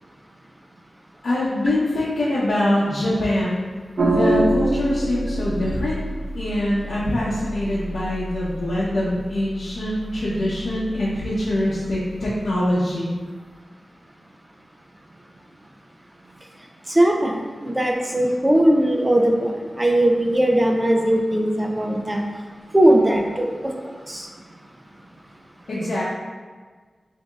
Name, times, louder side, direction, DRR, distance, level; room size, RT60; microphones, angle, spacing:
voice 1, 1.2-3.7 3.9-6.0 6.3-13.2 25.7-26.0, left 1 dB, 65° left, -9 dB, 0.8 m, -23 dB
sound 1, 4.0-12.5, right 1 dB, 60° right, 0.5 m, -27 dB
voice 2, 16.9-22.2 22.7-23.7 24.1-24.3, right 1 dB, 15° right, 1 dB, 0.6 m, -19 dB
6.8 x 2.8 x 2.4 m, 1.5 s
wide cardioid pair, 80°, 0 cm